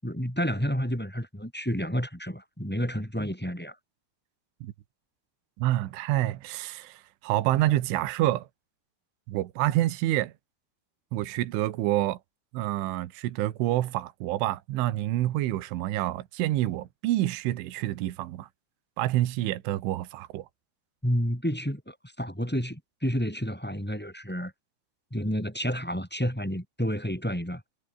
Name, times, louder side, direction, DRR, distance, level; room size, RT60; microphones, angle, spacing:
voice 1, 0.0-3.7 21.0-24.5 25.1-27.6, equal, ahead, 5.1 m, -30 dB
voice 2, 5.6-8.5 9.3-10.3 11.1-12.2 12.5-18.5 19.0-20.5, right 15 dB, 75° right, 3.8 m, -27 dB
omnidirectional pair, 5.9 m